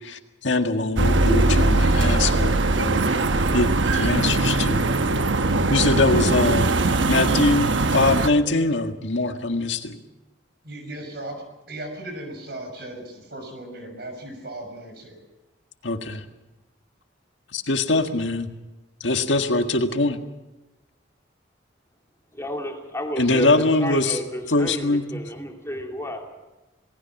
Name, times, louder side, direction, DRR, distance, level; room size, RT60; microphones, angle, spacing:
voice 1, 0.0-3.1 3.5-4.9 5.7-6.8 7.1-9.9 15.8-16.2 17.5-18.5 19.0-20.2 23.2-24.2 24.5-25.2, left 2 dB, 75° left, 6 dB, 1.8 m, -23 dB
sound 1, 1.0-8.3, right 2 dB, 75° right, 1.1 m, -20 dB
voice 2, 10.6-11.4 11.7-15.2, right 1 dB, 55° right, 5 dB, 6.2 m, -37 dB
voice 3, 22.3-26.5, equal, 15° left, 1 dB, 2.9 m, -32 dB
28.0 x 19.5 x 6.0 m, 1.0 s
head